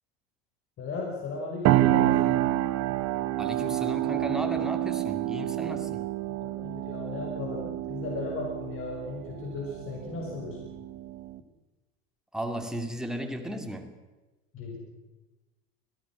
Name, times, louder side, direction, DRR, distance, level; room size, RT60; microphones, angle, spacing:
voice 1, 0.8-2.3 5.7-5.9 6.4-10.6 14.5-14.8, left 3 dB, 45° left, -1 dB, 6.3 m, -36 dB
sound 1, 1.6-11.4, right 14 dB, 55° right, 1.0 m, -28 dB
voice 2, 3.4-6.1 12.3-13.9, equal, ahead, 4 dB, 2.3 m, -35 dB
24.5 x 18.0 x 6.3 m, 1.1 s
supercardioid pair, 110°, 31 cm